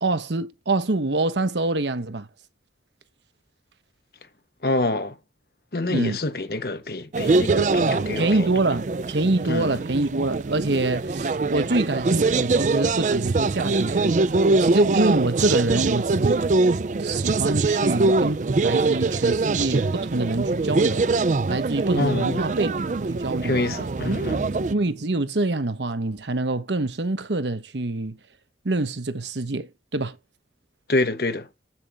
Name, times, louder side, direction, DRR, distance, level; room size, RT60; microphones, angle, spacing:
voice 1, 0.0-2.3 5.9-6.2 8.2-14.2 14.6-16.4 17.0-21.1 21.5-22.7 23.0-23.6 24.1-24.2 24.7-28.2 28.6-30.2, right 2 dB, 85° right, 1.0 m, -25 dB
voice 2, 4.6-5.2 5.7-8.5 9.5-9.8 22.0-22.4 23.4-24.5 30.9-31.5, left 2 dB, 60° left, 1.1 m, -26 dB
sound 1, 7.1-24.7, right 3 dB, 45° right, 0.4 m, -23 dB
7.6 x 7.3 x 3.4 m
head